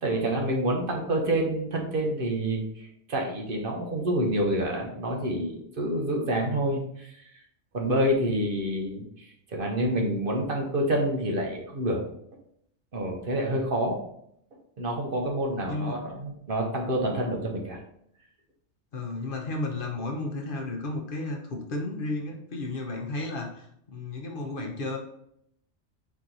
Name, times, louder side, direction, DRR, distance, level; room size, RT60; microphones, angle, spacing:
voice 1, 0.0-7.2 7.7-12.0 12.9-14.0 14.8-17.8, right 1 dB, 55° right, 1 dB, 1.0 m, -28 dB
voice 2, 15.7-16.1 18.9-25.0, left 2 dB, 55° left, 2 dB, 0.9 m, -33 dB
4.7 x 2.9 x 3.8 m, 0.71 s
omnidirectional pair, 1.2 m